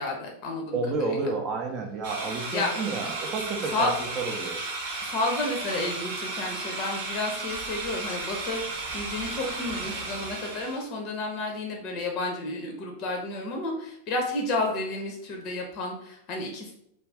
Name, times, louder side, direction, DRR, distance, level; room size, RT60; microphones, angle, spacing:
voice 1, 0.0-1.3 2.5-2.8 3.7-3.9 5.0-16.7, left 2 dB, 40° left, 1 dB, 0.5 m, -31 dB
voice 2, 0.7-4.6, right 3 dB, 35° right, 3 dB, 0.4 m, -30 dB
sound 1, 2.0-10.8, right 3 dB, 55° right, 0.8 m, -34 dB
2.4 x 2.3 x 3.3 m, 0.74 s
figure-of-eight pair, 90°, 0 cm